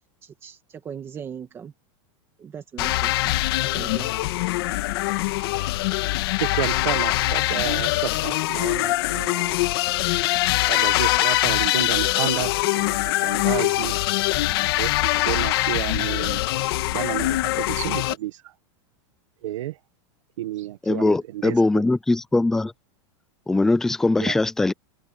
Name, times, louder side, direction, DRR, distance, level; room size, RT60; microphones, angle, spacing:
voice 1, 0.2-1.7 2.4-3.3 3.6-4.1, right 7 dB, 15° right, 2.1 m, -39 dB
sound 1, 2.8-18.1, left 18 dB, 50° left, 1.9 m, -23 dB
voice 2, 6.4-9.6 10.7-13.9 14.8-16.4 16.9-18.3 19.4-19.7 20.4-21.2 21.4-21.5 24.2-24.3, right 14 dB, 80° right, 1.6 m, -31 dB
voice 3, 20.8-22.7 23.5-24.7, left 2 dB, 5° left, 0.4 m, -21 dB
supercardioid pair, 175°, 16 cm